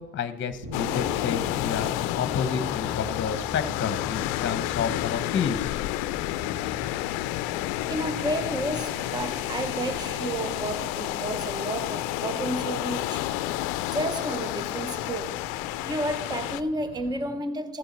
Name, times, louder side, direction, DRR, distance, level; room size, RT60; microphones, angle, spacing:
voice 1, 0.0-5.7, left 6 dB, 35° left, 0.9 m, -30 dB
Bass guitar, 0.6-6.9, equal, 65° right, 3.4 m, -43 dB
sound 1, 0.7-16.6, left 16 dB, 90° left, 0.5 m, -30 dB
sound 2, 1.3-17.3, equal, 30° right, 3.7 m, -46 dB
voice 2, 7.9-13.3 13.9-15.5 15.8-17.8, right 1 dB, 10° right, 0.7 m, -31 dB
14.5 x 7.8 x 4.3 m
cardioid pair, 100°, 34 cm